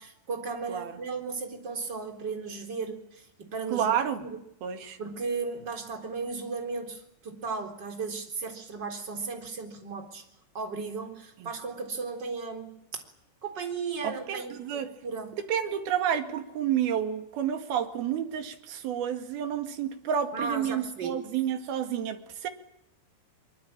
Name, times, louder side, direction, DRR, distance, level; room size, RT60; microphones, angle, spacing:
voice 1, 0.0-3.9 4.2-4.4 5.0-10.2 10.5-12.8 13.4-15.3 20.3-21.2, right 4 dB, 25° right, 3.9 m, -35 dB
voice 2, 3.7-4.2 4.6-5.0 11.4-11.5 14.0-14.9 15.3-22.5, right 9 dB, 60° right, 3.6 m, -30 dB
24.0 x 23.5 x 8.8 m
omnidirectional pair, 5.4 m